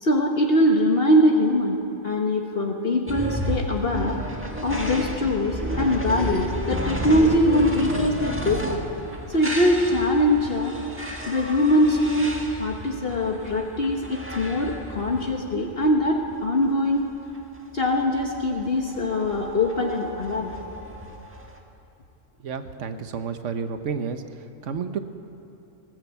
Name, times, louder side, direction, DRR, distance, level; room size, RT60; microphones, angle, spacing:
voice 1, 0.0-1.8 2.0-4.2 4.6-8.8 9.3-10.8 11.2-17.1 17.7-20.5, left 1 dB, 50° left, 1 dB, 1.6 m, -22 dB
sound 1, 3.1-21.6, equal, 10° right, 1.7 m, -32 dB
voice 2, 22.4-24.2 24.7-25.0, right 6 dB, 70° right, 8 dB, 1.4 m, -30 dB
19.5 x 18.0 x 8.3 m, 2.9 s
omnidirectional pair, 1.3 m